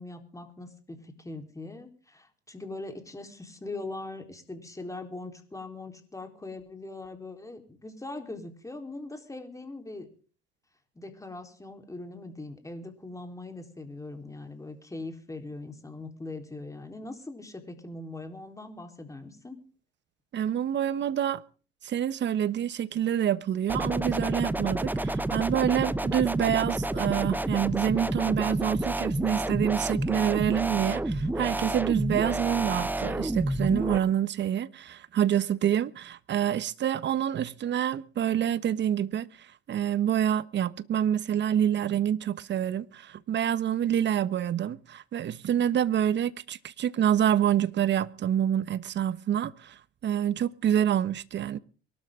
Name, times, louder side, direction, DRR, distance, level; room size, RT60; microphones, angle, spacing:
voice 1, 0.0-10.1 11.0-19.6, left 2 dB, 10° left, 4.0 m, -41 dB
voice 2, 20.3-21.4 21.8-39.3 39.7-51.6, right 10 dB, 40° right, 1.1 m, -27 dB
sound 1, 23.7-34.0, right 1 dB, 5° right, 0.8 m, -29 dB
23.5 x 12.5 x 3.8 m
hypercardioid pair, 80°, 29 cm